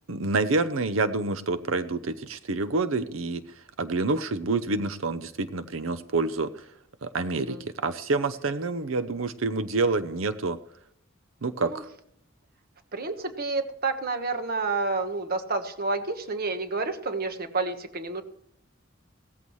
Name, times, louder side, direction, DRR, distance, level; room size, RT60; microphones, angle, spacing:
voice 1, 0.1-3.4 3.8-6.5 7.0-10.6 11.4-11.9, right 3 dB, 80° right, 12 dB, 0.7 m, -27 dB
voice 2, 12.9-18.2, right 3 dB, 50° right, 7 dB, 1.3 m, -29 dB
17.0 x 14.0 x 3.2 m, 0.72 s
head